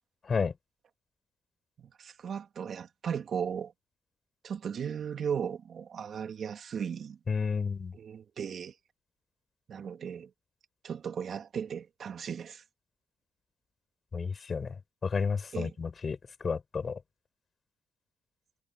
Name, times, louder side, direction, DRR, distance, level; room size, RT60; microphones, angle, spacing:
voice 1, 2.0-3.7 4.4-7.2 7.9-8.7 9.7-10.3 10.8-12.6 15.5-15.7, right 7 dB, 55° right, 2.4 m, -36 dB
voice 2, 7.3-7.9 14.1-14.7 15.0-16.2 16.4-17.0, left 5 dB, 40° left, 4.8 m, -31 dB
cardioid pair, 90°, 0 cm